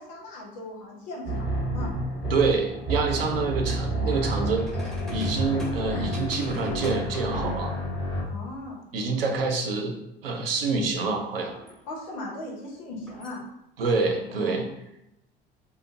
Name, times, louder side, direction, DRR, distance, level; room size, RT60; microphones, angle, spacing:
voice 1, 0.0-1.9 8.3-8.8 11.8-13.4 14.2-14.7, left 1 dB, 55° left, -3 dB, 1.0 m, -38 dB
sound 1, 1.2-8.2, equal, 90° left, 1.0 m, -29 dB
voice 2, 2.3-7.7 8.9-11.5 13.8-14.6, right 4 dB, 75° right, 3 dB, 0.5 m, -27 dB
sound 2, 4.5-7.8 10.3-10.5 11.0-11.9 12.9-13.4, left 1 dB, ahead, 0.7 m, -47 dB
2.8 x 2.5 x 2.5 m, 0.84 s
figure-of-eight pair, 70°, 29 cm